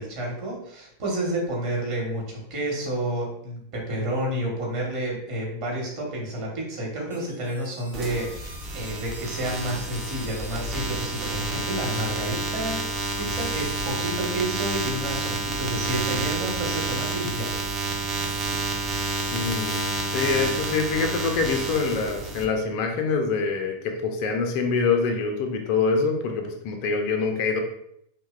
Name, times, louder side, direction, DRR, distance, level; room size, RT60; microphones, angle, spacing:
voice 1, 0.0-12.9 13.2-17.5, right 1 dB, 40° right, -2 dB, 0.9 m, -30 dB
sound 1, 7.1-14.2, equal, 85° right, 0.4 m, -46 dB
sound 2, 7.9-22.5, right 3 dB, 25° right, 0.4 m, -29 dB
voice 2, 19.3-27.6, left 4 dB, 45° left, 3 dB, 0.4 m, -25 dB
2.8 x 2.0 x 2.3 m, 0.74 s
figure-of-eight pair, 90°, 0 cm